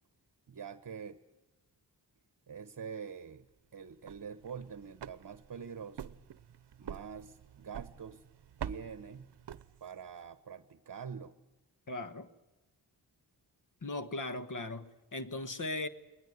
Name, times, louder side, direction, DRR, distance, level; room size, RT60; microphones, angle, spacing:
voice 1, 0.5-1.2 2.5-3.5 3.7-6.2 6.8-8.2 8.6-9.3 9.8-11.3, right 6 dB, 55° right, 1.0 m, -45 dB
sound 1, 3.9-10.2, right 9 dB, 75° right, 0.8 m, -47 dB
voice 2, 11.9-12.3 13.8-15.9, left 2 dB, 50° left, 1.3 m, -38 dB
20.5 x 20.5 x 9.5 m
wide cardioid pair, 110°, 41 cm